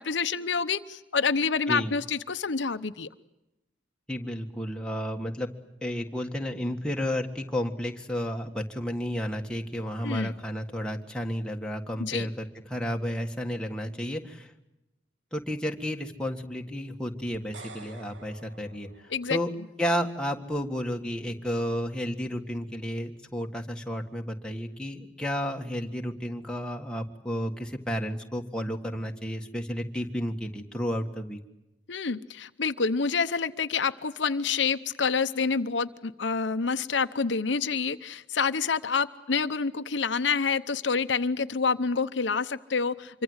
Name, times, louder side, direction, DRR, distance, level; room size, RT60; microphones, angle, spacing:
voice 1, 0.0-3.1 10.0-10.3 12.0-12.3 19.1-19.4 31.9-43.2, left 5 dB, 75° left, 10 dB, 0.8 m, -27 dB
voice 2, 4.1-5.5 5.8-14.5 15.3-18.9 19.3-19.5 19.8-31.4, equal, 5° left, 2 dB, 1.7 m, -32 dB
sound 1, 17.3-19.6, right 3 dB, 80° right, 1.9 m, -49 dB
26.0 x 24.0 x 8.1 m, 0.92 s
head